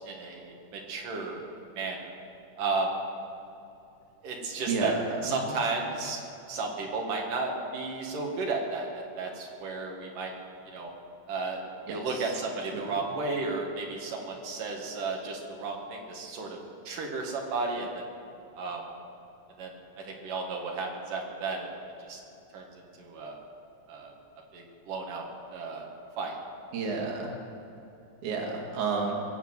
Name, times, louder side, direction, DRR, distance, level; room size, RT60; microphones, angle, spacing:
voice 1, 0.0-1.4 1.8-2.1 2.6-2.9 4.2-4.9 5.2-6.2 6.5-10.3 10.7-10.9 11.3-11.6 11.9-16.6 16.8-18.0 18.6-18.8 19.6-19.7 20.1-21.7 22.0-22.2 22.5-22.6 23.0-23.4 23.9-24.1 24.5-25.9 26.2-26.4, right 3 dB, 85° right, -1 dB, 3.3 m, -33 dB
voice 2, 4.7-5.5 11.9-12.4 12.7-12.8 26.7-27.3 28.2-29.2, right 4 dB, 70° right, 0 dB, 3.2 m, -31 dB
22.5 x 8.2 x 7.9 m, 2.8 s
omnidirectional pair, 3.7 m